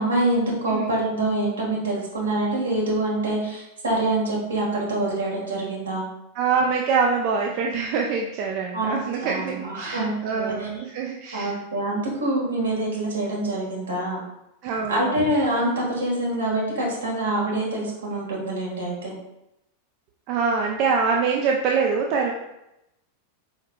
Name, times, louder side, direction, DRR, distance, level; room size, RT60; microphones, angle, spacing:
voice 1, 0.0-6.1 8.7-8.9 9.2-10.7 11.3-14.2 14.9-19.1, right 1 dB, 70° right, -3 dB, 1.5 m, -25 dB
voice 2, 6.3-11.5 14.6-15.2 20.3-22.3, right 5 dB, 45° right, 0 dB, 0.4 m, -24 dB
4.6 x 4.5 x 2.2 m, 0.87 s
figure-of-eight pair, 90°, 0 cm